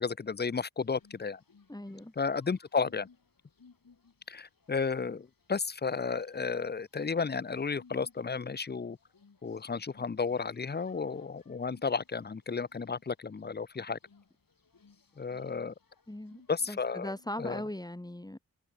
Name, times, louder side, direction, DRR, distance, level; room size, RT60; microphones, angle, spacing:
voice 1, 0.0-1.4 2.2-3.1 4.3-9.0 9.4-14.0 15.2-15.7 16.5-17.1 17.4-17.6, left 5 dB, 25° left, 0.6 m, -33 dB
sound 1, 0.8-17.5, left 4 dB, 60° left, 6.5 m, -63 dB
voice 2, 1.7-2.1 16.1-16.4 16.7-18.4, left 1 dB, 10° left, 1.2 m, -39 dB
wide cardioid pair, 85°, 39 cm